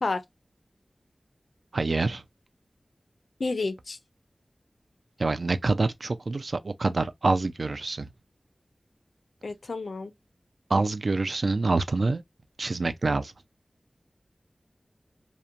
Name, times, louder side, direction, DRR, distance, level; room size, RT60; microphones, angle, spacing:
voice 1, 1.7-2.2 5.2-8.1 10.7-12.2 12.6-13.3, right 3 dB, 70° right, 0.3 m, -26 dB
voice 2, 3.4-4.0 9.4-10.1, left 3 dB, 85° left, 0.4 m, -30 dB
2.8 x 2.1 x 2.4 m
wide cardioid pair, 70°, 0 cm